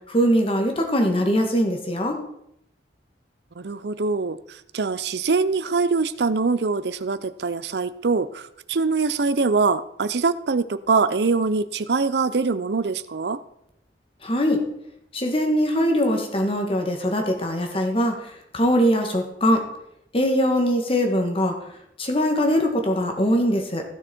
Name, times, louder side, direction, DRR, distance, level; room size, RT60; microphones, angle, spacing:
voice 1, 0.1-2.2 14.2-14.6 15.1-18.2 18.5-19.7 20.1-21.6 22.0-23.8, equal, 30° left, 4 dB, 1.8 m, -21 dB
voice 2, 3.6-4.4 4.7-13.4, right 4 dB, 70° right, 14 dB, 0.6 m, -23 dB
15.5 x 6.3 x 4.4 m, 0.76 s
head